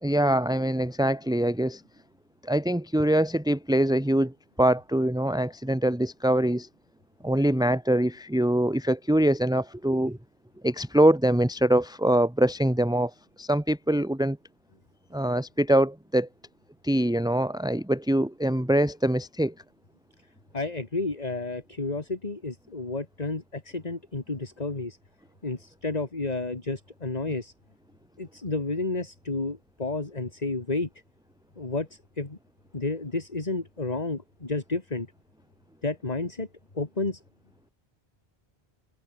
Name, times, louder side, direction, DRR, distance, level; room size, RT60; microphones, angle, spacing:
voice 1, 0.0-1.8 2.4-4.3 4.6-6.7 7.2-10.2 10.6-13.1 13.4-14.4 15.1-16.3 16.8-19.5, right 1 dB, 5° right, 1.4 m, -23 dB
voice 2, 20.5-25.0 25.4-27.5 28.2-30.9 31.6-32.4 32.7-35.1 35.8-36.5 36.7-37.2, left 3 dB, 40° left, 2.4 m, -31 dB
open air
omnidirectional pair, 1.0 m